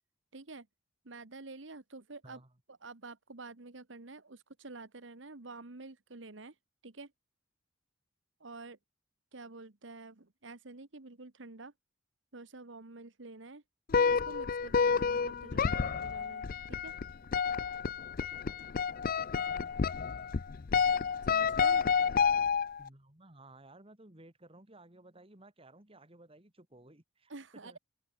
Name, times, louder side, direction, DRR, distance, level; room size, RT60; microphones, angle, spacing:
voice 1, 0.3-0.7 1.0-2.4 2.7-6.6 6.8-7.1 8.4-8.8 9.3-11.7 12.3-13.6 14.0-16.9 21.2-21.9 27.3-27.8, right 3 dB, 70° right, 1.5 m, -49 dB
sound 1, 13.9-22.9, left 6 dB, 45° left, 0.5 m, -30 dB
voice 2, 22.8-27.8, right 2 dB, 30° right, 2.6 m, -56 dB
open air
head